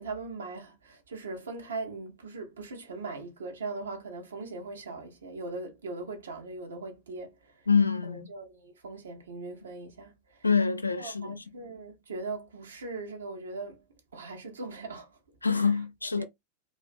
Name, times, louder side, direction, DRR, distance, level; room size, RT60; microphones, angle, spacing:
voice 1, 0.0-7.5 8.0-10.1 10.9-13.8 14.1-15.2 15.5-15.7 16.2-16.3, right 3 dB, 70° right, 0.7 m, -40 dB
voice 2, 7.7-8.3 10.4-11.4 15.4-16.2, left 5 dB, 80° left, 0.3 m, -26 dB
2.5 x 2.2 x 2.5 m
figure-of-eight pair, 90°, 0 cm